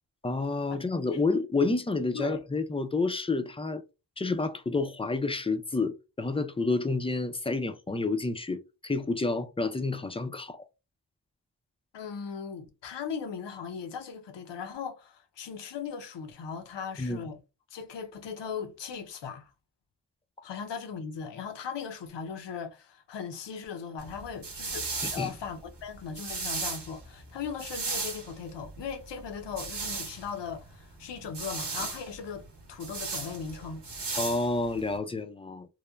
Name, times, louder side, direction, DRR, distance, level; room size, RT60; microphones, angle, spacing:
voice 1, 0.2-3.8 4.2-10.6 17.0-17.2 25.0-25.3 34.2-35.7, left 3 dB, 15° left, 0.3 m, -29 dB
voice 2, 11.9-17.4 17.7-19.5 20.4-33.8, left 6 dB, 85° left, 0.6 m, -38 dB
sound 1, 24.0-35.0, right 4 dB, 80° right, 0.9 m, -37 dB
3.0 x 2.0 x 2.2 m
cardioid pair, 50°, 41 cm